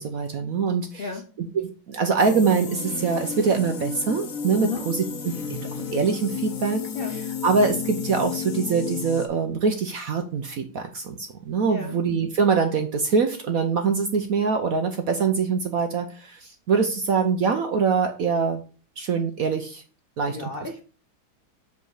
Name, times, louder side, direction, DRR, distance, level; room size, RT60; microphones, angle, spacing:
voice 1, 0.0-1.1 1.4-6.8 7.1-18.6 19.0-19.8 20.2-20.5, right 5 dB, 65° right, 5 dB, 0.9 m, -24 dB
sound 1, 2.2-9.3, left 5 dB, 50° left, 1.2 m, -32 dB
voice 2, 20.3-20.8, left 4 dB, 85° left, 3 dB, 0.5 m, -32 dB
7.7 x 4.1 x 4.8 m, 0.37 s
omnidirectional pair, 2.3 m